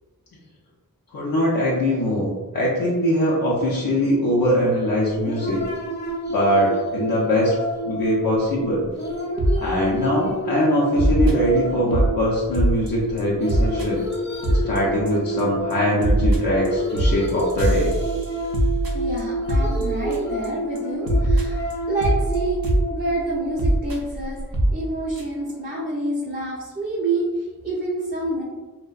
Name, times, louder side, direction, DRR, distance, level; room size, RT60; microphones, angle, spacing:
voice 1, 1.1-5.6 6.3-7.5 7.8-8.9 9.6-14.1 14.5-17.9, equal, 75° left, -5 dB, 0.5 m, -22 dB
sound 1, 5.0-24.6, equal, 30° left, 0.5 m, -29 dB
sound 2, 9.4-9.6 10.0-10.3 11.0-12.1 12.5-12.9 13.2-13.3 13.5-13.9 14.1-14.2 14.4-14.8 15.1-15.4 15.7-20.5 20.8-20.9 21.1-22.9 23.6-24.0 24.5-24.8 25.2-25.3 25.5-25.6, right 1 dB, 75° right, 0.5 m, -22 dB
voice 2, 18.9-21.6 21.9-22.6 22.9-24.4 24.7-28.4, right 2 dB, 25° right, -6 dB, 0.5 m, -27 dB
2.6 x 2.1 x 2.3 m, 1.3 s
wide cardioid pair, 45°, 35 cm